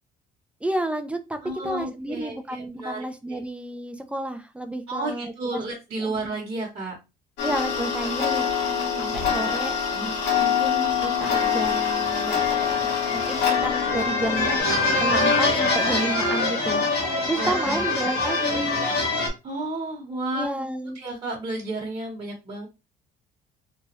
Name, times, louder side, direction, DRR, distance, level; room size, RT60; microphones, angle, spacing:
voice 1, 0.6-1.4 1.6-5.6 6.0-6.2 7.4-14.7 15.0-16.8 17.3-18.9 20.3-21.0, right 1 dB, 5° right, 8 dB, 0.4 m, -31 dB
voice 2, 1.4-3.4 4.9-6.9 8.7-9.1 9.9-10.1 17.4-18.1 19.4-20.5 20.9-22.7, right 2 dB, 35° right, -3 dB, 1.1 m, -32 dB
Tick-tock, 7.4-14.6, left 7 dB, 85° left, 1.2 m, -25 dB
sound 1, 10.8-19.3, left 2 dB, 65° left, 1.3 m, -25 dB
3.1 x 2.2 x 3.0 m, 0.26 s
cardioid pair, 110°, 17 cm